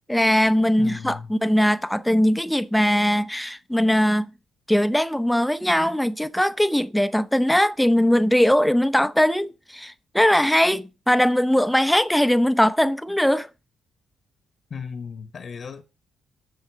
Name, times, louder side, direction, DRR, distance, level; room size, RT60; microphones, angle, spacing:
voice 1, 0.1-4.3 4.7-13.5, equal, 5° left, 0.7 m, -20 dB
voice 2, 0.8-1.3 14.7-15.8, left 6 dB, 45° left, 1.2 m, -35 dB
8.2 x 6.3 x 6.3 m
cardioid pair, 90°, 0 cm